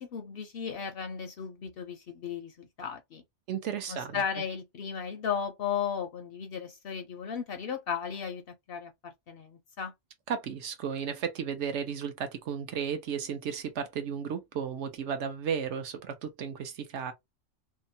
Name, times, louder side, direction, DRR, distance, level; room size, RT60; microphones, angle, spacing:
voice 1, 0.0-3.2 3.9-8.4 8.7-9.9, left 7 dB, 60° left, 0.6 m, -35 dB
voice 2, 3.5-4.2 10.3-17.1, right 7 dB, 70° right, 1.0 m, -34 dB
2.8 x 2.1 x 2.6 m
omnidirectional pair, 1.3 m